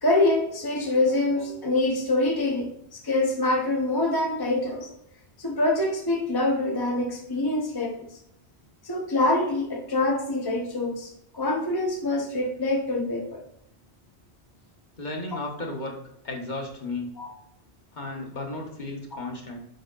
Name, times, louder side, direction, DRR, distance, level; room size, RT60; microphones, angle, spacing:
voice 1, 0.0-4.9 5.4-8.1 8.8-13.4 17.2-17.3 19.1-19.2, left 2 dB, 25° left, 0 dB, 0.8 m, -25 dB
voice 2, 15.0-16.0 16.2-17.1 17.9-19.6, left 2 dB, 45° left, 0 dB, 1.4 m, -34 dB
7.2 x 4.9 x 3.9 m, 0.76 s
omnidirectional pair, 1.1 m